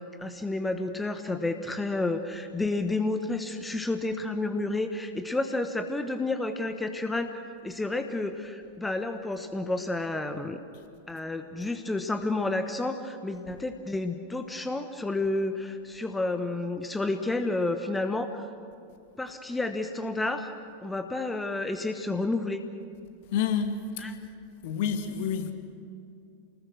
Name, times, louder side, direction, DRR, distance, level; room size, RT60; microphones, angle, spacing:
voice 1, 0.2-10.6 11.1-18.5 19.2-20.5 20.8-22.6 24.0-24.1, left 2 dB, 10° left, 1.2 m, -30 dB
voice 2, 23.3-24.1 24.6-25.5, left 7 dB, 50° left, 2.0 m, -29 dB
29.0 x 20.5 x 6.5 m
figure-of-eight pair, 90°, 0 cm